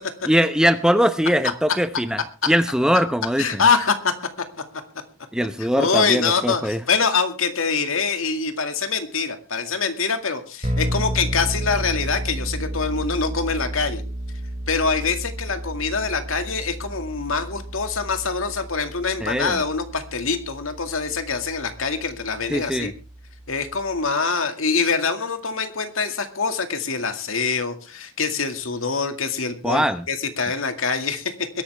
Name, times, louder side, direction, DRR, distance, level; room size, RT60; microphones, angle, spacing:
voice 1, 0.2-3.6 5.3-6.8 19.2-19.6 22.5-22.9 29.6-30.1, equal, 5° right, 10 dB, 0.8 m, -21 dB
voice 2, 3.4-4.1 5.7-14.0 14.7-22.9 23.5-31.5, left 5 dB, 85° left, 7 dB, 2.2 m, -24 dB
sound 1, 10.6-24.1, equal, 30° right, 1.8 m, -32 dB
22.0 x 11.5 x 3.5 m, 0.31 s
head